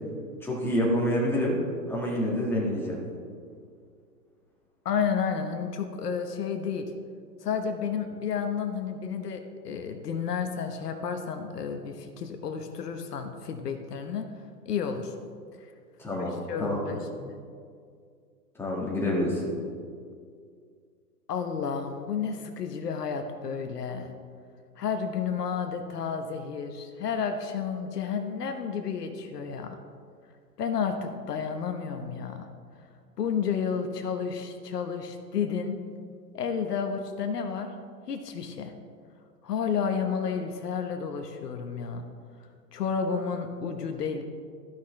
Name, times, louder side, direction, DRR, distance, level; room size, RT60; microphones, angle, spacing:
voice 1, 0.4-1.6 1.9-3.0 16.0-16.8 18.6-19.4, left 1 dB, 5° left, -4 dB, 1.7 m, -27 dB
voice 2, 4.8-6.9 7.4-14.3 14.6-15.1 16.1-17.4 21.3-24.1 24.8-29.8 30.6-32.5 33.2-35.8 36.3-37.7 38.1-38.7 39.4-42.1 42.7-44.2, left 6 dB, 70° left, 6 dB, 1.0 m, -31 dB
14.0 x 5.8 x 3.2 m, 2.2 s
hypercardioid pair, 130°, 49 cm